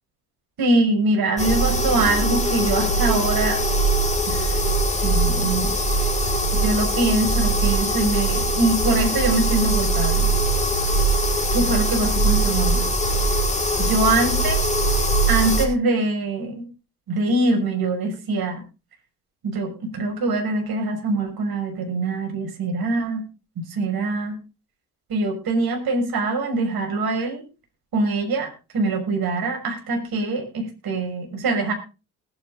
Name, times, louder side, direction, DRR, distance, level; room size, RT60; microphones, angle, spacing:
voice 1, 0.6-3.6 4.3-4.6 5.0-5.7 6.5-10.3 11.5-12.9 13.8-14.6 15.3-16.6 17.1-18.6 19.4-23.2 23.7-24.4 25.1-27.4 27.9-31.7, right 2 dB, 55° right, 3 dB, 6.3 m, -23 dB
sound 1, 1.4-15.7, right 1 dB, 15° left, 5.0 m, -21 dB
19.5 x 9.9 x 3.9 m, 0.32 s
hypercardioid pair, 55°, 44 cm